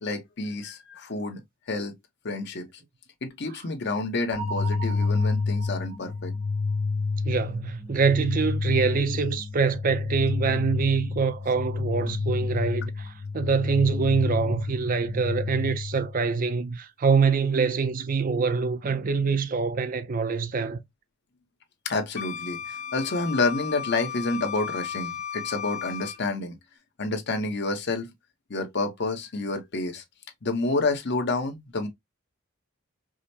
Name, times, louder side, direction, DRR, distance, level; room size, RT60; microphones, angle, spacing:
voice 1, 0.0-1.4 1.7-1.9 2.2-2.7 3.2-6.3 21.8-26.6 27.0-28.1 28.5-30.0 30.4-31.9, left 3 dB, 50° left, 0.8 m, -29 dB
sound 1, 4.3-16.3, left 4 dB, 85° left, 0.8 m, -29 dB
voice 2, 7.2-20.8, right 5 dB, 40° right, 0.4 m, -25 dB
Wind instrument woodwind instrument, 22.2-26.2, left 8 dB, 35° left, 0.4 m, -35 dB
4.9 x 2.1 x 2.7 m
head